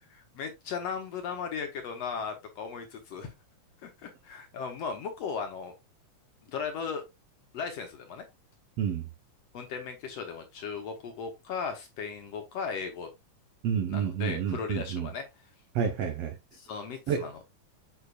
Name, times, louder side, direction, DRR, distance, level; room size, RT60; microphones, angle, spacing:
voice 1, 0.4-3.3 3.8-5.7 6.5-7.0 7.5-8.2 9.5-13.1 13.9-15.2 16.5-17.4, left 6 dB, 65° left, 1.9 m, -36 dB
voice 2, 13.6-15.1 15.7-16.4 17.1-17.3, right 8 dB, 70° right, 1.6 m, -29 dB
8.3 x 5.1 x 2.3 m
omnidirectional pair, 3.7 m